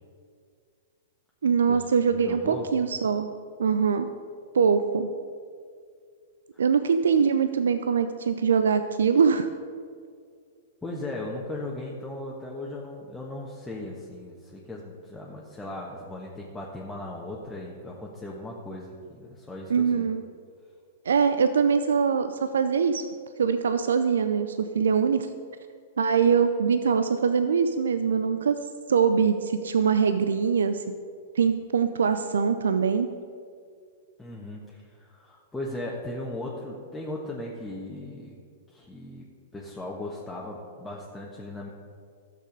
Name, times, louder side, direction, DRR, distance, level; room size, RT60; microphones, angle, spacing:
voice 1, 1.4-3.3 3.6-4.1 4.5-5.1 6.6-9.5 19.7-20.2 21.1-23.0 23.4-25.3 26.0-28.6 28.9-30.8 31.4-33.1, right 6 dB, 75° right, 10 dB, 0.5 m, -23 dB
voice 2, 2.2-2.7 6.5-6.6 10.8-20.1 34.2-38.4 38.7-39.3 39.5-41.7, left 1 dB, 10° left, -4 dB, 1.4 m, -37 dB
13.0 x 6.8 x 5.3 m, 2.2 s
hypercardioid pair, 110°, 0 cm